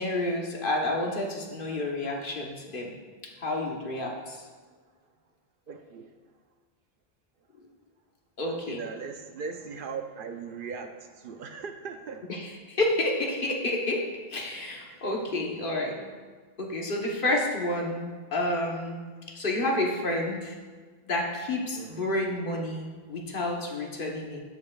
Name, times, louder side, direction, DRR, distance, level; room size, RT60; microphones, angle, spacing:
voice 1, 0.0-2.9 3.4-4.4 8.4-8.8 12.3-14.0 14.3-16.1 16.6-19.0 19.3-20.5 21.1-24.4, left 1 dB, 60° left, 0 dB, 1.2 m, -30 dB
voice 2, 5.7-6.1 8.5-12.3 21.8-22.1, right 5 dB, 65° right, 6 dB, 0.7 m, -39 dB
15.0 x 5.4 x 2.3 m, 1.5 s
omnidirectional pair, 1.0 m